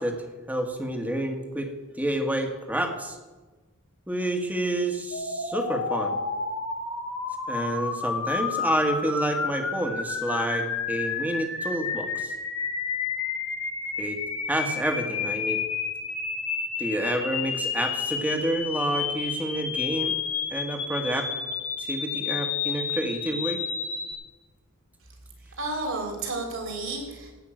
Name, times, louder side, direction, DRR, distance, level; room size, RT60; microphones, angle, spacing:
voice 1, 0.0-1.7 2.0-3.2 4.1-6.2 7.5-12.3 14.0-14.2 14.5-15.6 16.8-20.1 20.5-21.3 21.8-23.6, right 1 dB, 5° right, 4 dB, 1.5 m, -29 dB
sound 1, 5.1-24.1, left 5 dB, 70° left, 2.4 m, -31 dB
voice 2, 25.6-27.3, right 2 dB, 60° right, 2 dB, 3.4 m, -31 dB
16.5 x 5.8 x 8.9 m, 1.2 s
head